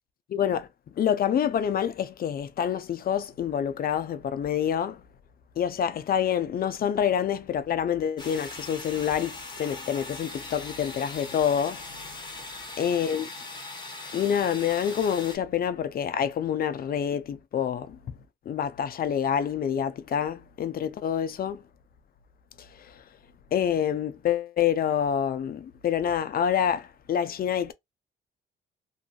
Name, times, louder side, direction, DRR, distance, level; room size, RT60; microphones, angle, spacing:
voice 1, 0.3-0.7 1.0-5.0 5.6-12.2 12.8-13.3 14.1-18.0 18.5-21.6 23.5-27.7, left 9 dB, 50° left, 0.5 m, -27 dB
sound 1, 8.2-15.4, left 2 dB, 20° left, 0.9 m, -40 dB
2.5 x 2.4 x 2.4 m
cardioid pair, 90°, 20 cm